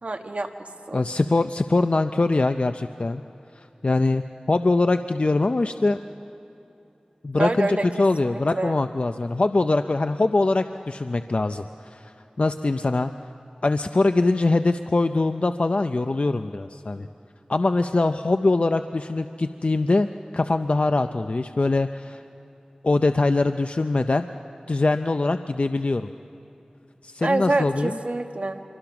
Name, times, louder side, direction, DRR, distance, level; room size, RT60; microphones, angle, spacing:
voice 1, 0.0-1.0 7.4-7.8 8.2-8.8 27.2-28.6, right 2 dB, 65° right, 5 dB, 1.4 m, -26 dB
voice 2, 0.9-3.2 3.6-4.2 4.5-6.0 7.2-12.1 12.4-13.1 13.6-17.1 17.5-20.1 20.3-22.2 22.8-24.3 24.7-26.1 27.0-28.0, left 2 dB, 55° left, 8 dB, 0.5 m, -22 dB
26.0 x 23.5 x 6.0 m, 2.9 s
wide cardioid pair, 55°, 2 cm